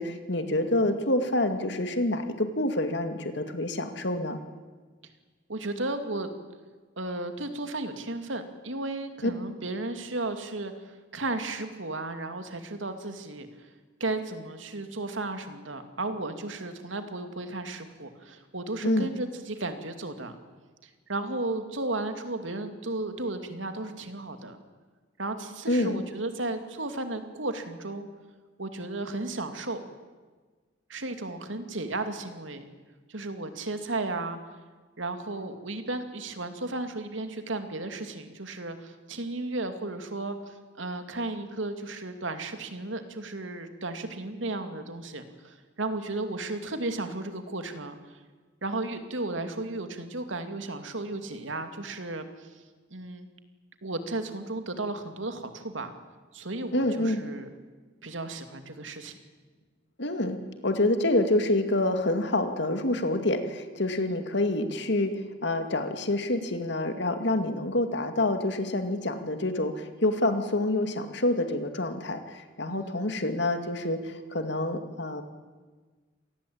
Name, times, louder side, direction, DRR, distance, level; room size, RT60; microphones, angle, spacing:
voice 1, 0.0-4.4 9.2-9.3 18.8-19.1 25.7-26.0 56.7-57.2 60.0-60.4 60.6-65.1 65.4-75.2, left 1 dB, 65° left, 7 dB, 2.3 m, -27 dB
voice 2, 5.5-6.3 7.0-13.5 14.0-20.4 21.1-24.6 25.2-28.1 28.6-29.8 30.9-32.6 33.1-34.4 35.0-48.0 48.6-52.6 52.9-53.3 53.8-55.9 56.3-57.5 58.0-59.1 63.9-64.2 72.7-73.0, right 2 dB, 90° right, 7 dB, 2.6 m, -34 dB
27.5 x 19.0 x 8.7 m, 1.4 s
head